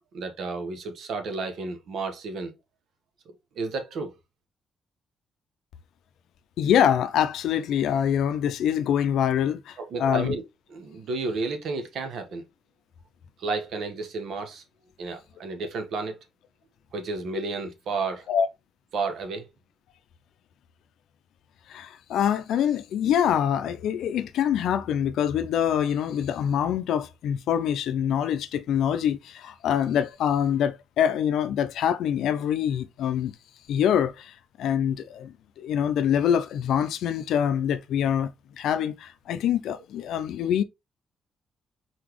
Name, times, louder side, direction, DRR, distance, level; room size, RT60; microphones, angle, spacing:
voice 1, 0.1-2.5 3.3-4.1 9.8-10.4 10.7-12.5 13.4-14.6 15.0-16.2 16.9-18.2 18.9-19.5, right 3 dB, 75° right, 1.1 m, -32 dB
voice 2, 6.6-10.4 18.3-18.5 21.7-33.3 33.7-38.3 38.6-40.6, left 9 dB, 80° left, 0.5 m, -25 dB
4.3 x 4.0 x 3.0 m
cardioid pair, 75°, 0 cm